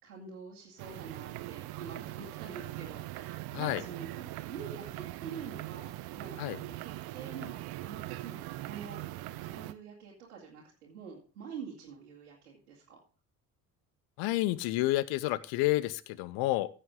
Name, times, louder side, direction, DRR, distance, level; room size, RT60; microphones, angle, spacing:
voice 1, 0.0-9.0 9.4-13.0, right 6 dB, 80° right, -6 dB, 2.3 m, -46 dB
sound 1, 0.8-9.7, right 17 dB, 55° right, 0.8 m, -41 dB
voice 2, 14.2-16.7, left 17 dB, 55° left, 18 dB, 0.8 m, -30 dB
15.0 x 6.6 x 3.7 m, 0.35 s
figure-of-eight pair, 50°, 45 cm